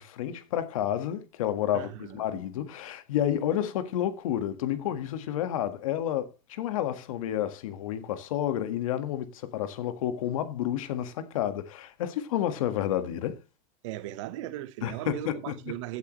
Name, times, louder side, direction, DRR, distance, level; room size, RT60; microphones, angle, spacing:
voice 1, 0.0-13.4 14.8-15.6, left 11 dB, 80° left, 1.8 m, -30 dB
voice 2, 1.7-2.4 13.8-16.0, right 13 dB, 65° right, 1.2 m, -38 dB
15.5 x 8.3 x 3.2 m
supercardioid pair, 155°, 17 cm